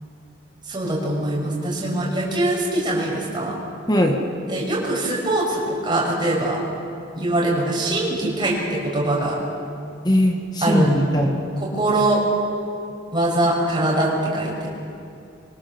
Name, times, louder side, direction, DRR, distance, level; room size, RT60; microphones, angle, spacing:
voice 1, 0.7-3.5 4.5-6.6 7.2-9.4 10.6-11.0 11.6-12.2 13.1-14.7, right 1 dB, 25° right, -3 dB, 6.4 m, -22 dB
voice 2, 3.9-4.2 10.0-11.4, equal, 20° left, 3 dB, 1.6 m, -19 dB
25.5 x 24.0 x 7.4 m, 2.5 s
head